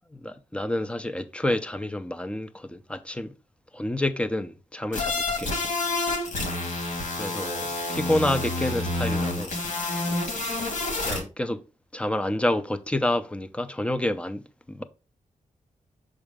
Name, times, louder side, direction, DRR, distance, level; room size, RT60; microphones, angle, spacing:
voice 1, 0.1-3.3 3.7-5.5 7.2-9.6 11.0-11.6 11.9-14.8, left 1 dB, 10° left, 0.5 m, -28 dB
sound 1, 4.9-11.2, left 2 dB, 80° left, 2.4 m, -28 dB
6.3 x 4.9 x 3.5 m
wide cardioid pair, 135°, 13 cm